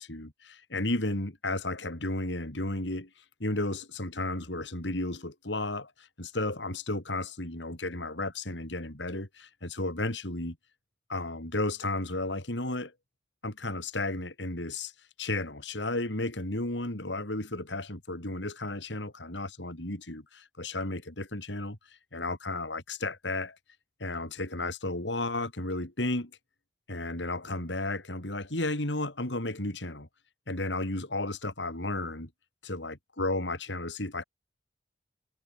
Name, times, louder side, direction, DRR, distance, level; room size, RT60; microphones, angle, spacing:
voice 1, 0.0-3.1 3.4-10.6 11.1-12.9 13.4-14.9 15.2-21.8 22.1-23.6 24.0-26.3 26.9-30.1 30.5-32.3 32.6-34.2, left 2 dB, 80° left, 4.0 m, -33 dB
head